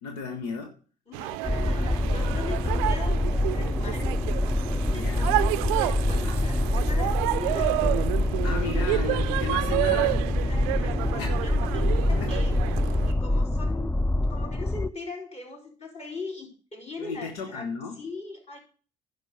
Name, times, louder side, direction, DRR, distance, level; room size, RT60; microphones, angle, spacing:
voice 1, 0.0-0.8 2.6-2.7 4.9-5.3 6.2-6.4 8.4-10.3 11.2-11.3 12.1-12.4 17.0-18.0, left 5 dB, 85° left, 3 dB, 1.1 m, -35 dB
voice 2, 1.1-4.2 4.7-5.4 5.7-8.3 8.6-8.8 10.5-12.6 13.0-14.0 14.3-17.7 18.0-18.6, left 3 dB, 35° left, -2 dB, 4.6 m, -40 dB
sound 1, 1.1-13.1, right 19 dB, 80° right, 0.4 m, -30 dB
sound 2, 1.4-14.9, left 1 dB, 10° left, 0.5 m, -26 dB
11.0 x 4.8 x 6.6 m, 0.39 s
hypercardioid pair, 55°, 19 cm